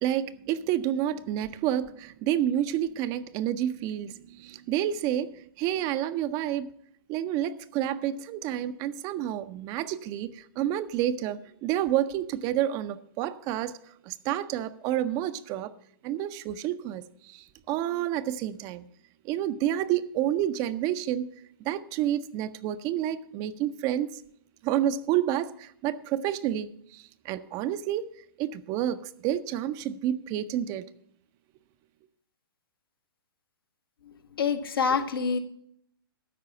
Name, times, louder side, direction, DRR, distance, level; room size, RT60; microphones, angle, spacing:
voice 1, 0.0-6.7 7.1-13.8 14.0-15.7 16.0-18.8 19.2-21.3 21.6-24.2 24.6-28.1 28.4-30.8, right 11 dB, 30° right, 0.5 m, -29 dB
voice 2, 34.4-35.4, left 6 dB, 75° left, 1.3 m, -26 dB
12.5 x 4.8 x 8.5 m
hypercardioid pair, 120°, 12 cm